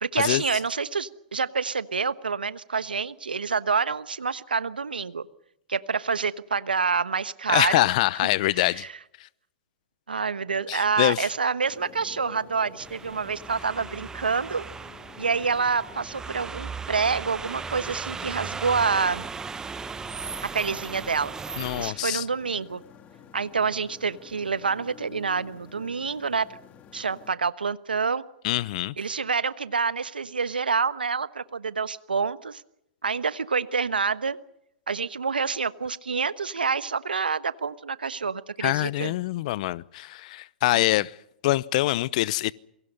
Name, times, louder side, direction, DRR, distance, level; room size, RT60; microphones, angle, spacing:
voice 1, 0.0-5.3 5.7-7.9 8.6-8.9 10.1-14.6 15.2-19.3 20.5-22.8 23.3-26.5 26.9-28.2 29.0-32.6 33.0-34.4 34.9-39.1 40.7-40.9, right 5 dB, 85° right, 1.2 m, -27 dB
voice 2, 7.5-8.8 9.2-9.3 10.7-11.3 21.6-22.2 28.4-28.9 38.6-41.2 41.4-42.5, left 17 dB, 50° left, 0.8 m, -24 dB
Motorcycle, 11.7-27.3, left 7 dB, 30° left, 2.9 m, -50 dB
sound 1, 12.8-21.9, right 5 dB, 10° right, 0.8 m, -37 dB
28.0 x 23.0 x 5.5 m
figure-of-eight pair, 110°, 5 cm